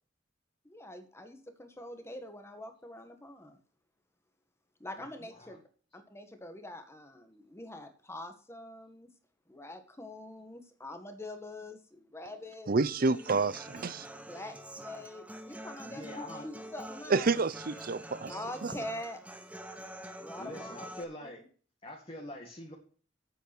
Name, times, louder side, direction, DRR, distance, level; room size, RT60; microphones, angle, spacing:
voice 1, 0.6-3.6 4.8-5.6 5.9-9.1 9.5-12.7 14.3-17.4 18.2-19.2 20.2-20.7 21.2-21.3, left 1 dB, 15° left, 1.7 m, -44 dB
voice 2, 5.0-5.6 15.8-16.5 20.4-21.4 21.8-22.7, left 1 dB, 30° left, 2.0 m, -44 dB
voice 3, 12.7-14.1 17.1-18.3 18.6-18.7, right 3 dB, 50° right, 0.6 m, -29 dB
Human voice / Acoustic guitar, 13.0-21.0, right 1 dB, 5° right, 1.1 m, -46 dB
8.7 x 8.4 x 6.0 m
head